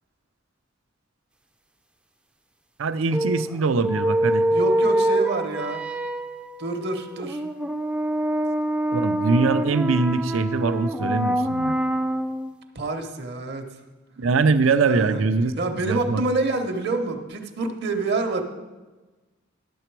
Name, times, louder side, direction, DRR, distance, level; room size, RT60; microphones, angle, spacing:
voice 1, 2.8-4.5 8.9-11.8 14.2-15.5 15.9-16.2, right 4 dB, 80° right, 12 dB, 0.5 m, -22 dB
sound 1, 3.1-12.5, right 1 dB, 5° right, 0.4 m, -25 dB
voice 2, 4.5-5.8 6.6-7.4 12.7-13.8 14.9-15.2 15.6-18.4, right 3 dB, 55° right, 5 dB, 0.9 m, -27 dB
11.0 x 6.7 x 4.6 m, 1.2 s
head